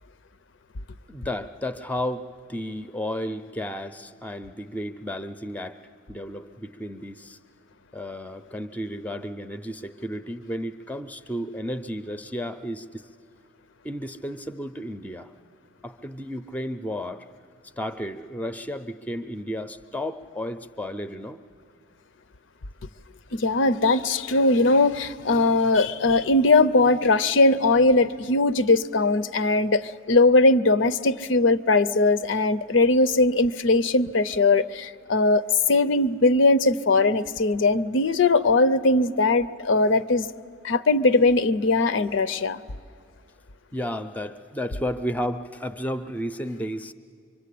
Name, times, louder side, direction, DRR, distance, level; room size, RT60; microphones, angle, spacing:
voice 1, 1.1-5.8 6.1-7.4 7.9-13.1 13.8-15.3 15.8-17.2 17.8-21.4 43.7-46.9, equal, 10° left, 11 dB, 0.5 m, -33 dB
voice 2, 23.3-35.4 35.7-40.3 40.6-42.6, left 2 dB, 60° left, 14 dB, 0.6 m, -20 dB
24.5 x 24.5 x 8.5 m, 2.3 s
head